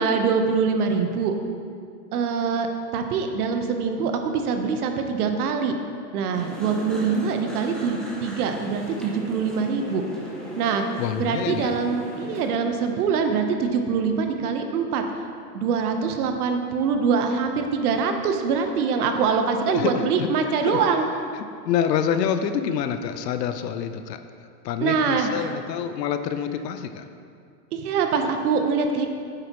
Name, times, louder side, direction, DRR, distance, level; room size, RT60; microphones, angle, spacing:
voice 1, 0.0-1.3 2.1-2.7 2.9-5.7 6.1-10.0 10.6-10.8 11.2-15.0 15.5-21.1 24.8-25.5 27.7-29.1, right 5 dB, 65° right, 5 dB, 1.0 m, -24 dB
sound 1, 6.3-12.5, equal, ahead, 0.6 m, -37 dB
voice 2, 11.0-11.8 19.7-20.3 20.6-20.8 21.3-24.2 24.6-27.1, left 8 dB, 75° left, 9 dB, 0.7 m, -27 dB
9.0 x 6.8 x 3.0 m, 2.3 s
hypercardioid pair, 140°, 49 cm